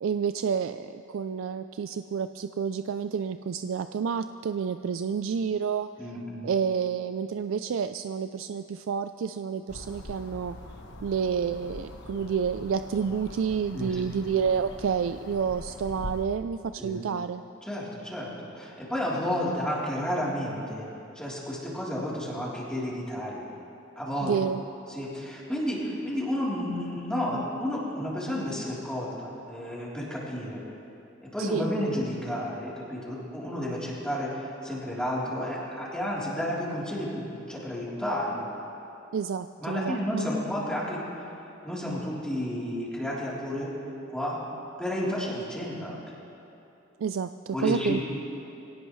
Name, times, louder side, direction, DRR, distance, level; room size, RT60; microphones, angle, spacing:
voice 1, 0.0-5.9 6.4-10.6 11.0-17.4 24.2-24.6 31.4-31.6 39.1-40.3 47.0-48.0, right 6 dB, 75° right, 10 dB, 0.4 m, -29 dB
voice 2, 6.0-6.5 13.7-14.0 16.8-17.0 17.7-20.9 21.1-23.4 23.9-24.4 24.9-30.6 31.2-38.4 39.6-41.0 41.6-43.7 44.1-44.4 44.8-46.0 47.5-48.0, equal, 5° left, -7 dB, 3.4 m, -31 dB
sound 1, 9.7-16.2, left 1 dB, 65° left, 1.3 m, -43 dB
25.0 x 18.0 x 3.2 m, 2.9 s
head